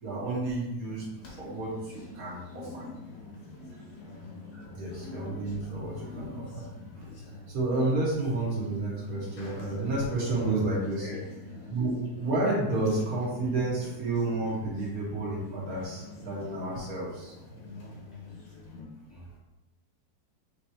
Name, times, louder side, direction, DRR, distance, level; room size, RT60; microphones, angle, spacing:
voice 1, 0.0-1.0 1.4-2.8 3.6-3.7 4.7-6.6 7.0-7.1 7.5-11.1 11.7-17.4, right 2 dB, 55° right, -6 dB, 1.6 m, -30 dB
sound 1, 0.8-18.8, left 2 dB, 80° left, 1.8 m, -45 dB
voice 2, 4.5-4.9 5.8-5.9 6.8-6.9 11.0-11.2 19.1-19.4, left 3 dB, 55° left, -6 dB, 0.8 m, -46 dB
5.9 x 3.1 x 2.8 m, 1.0 s
omnidirectional pair, 2.0 m